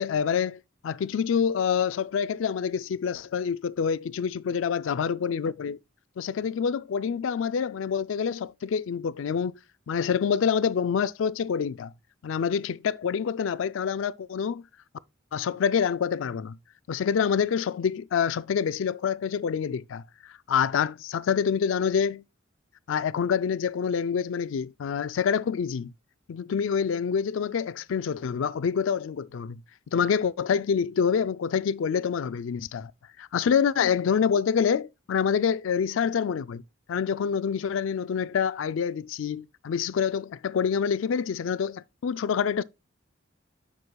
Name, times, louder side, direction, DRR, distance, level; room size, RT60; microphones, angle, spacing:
voice 1, 0.0-5.8 6.2-9.6 9.9-11.9 12.2-14.6 15.3-16.6 16.9-22.2 22.9-25.9 26.3-29.6 29.9-32.9 33.2-36.6 36.9-42.6, left 7 dB, 70° left, 0.4 m, -27 dB
9.5 x 6.1 x 2.3 m
head